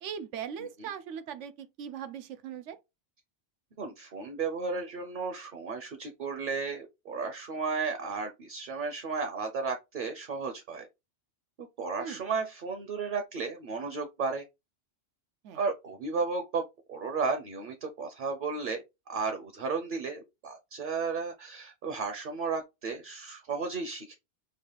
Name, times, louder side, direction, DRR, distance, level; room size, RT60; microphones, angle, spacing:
voice 1, 0.0-2.8 12.0-12.2 15.4-15.6, right 8 dB, 85° right, 1.0 m, -39 dB
voice 2, 3.8-10.9 11.8-14.4 15.5-18.8 19.1-24.2, right 4 dB, 50° right, 0.8 m, -34 dB
5.3 x 2.3 x 3.9 m
omnidirectional pair, 1.2 m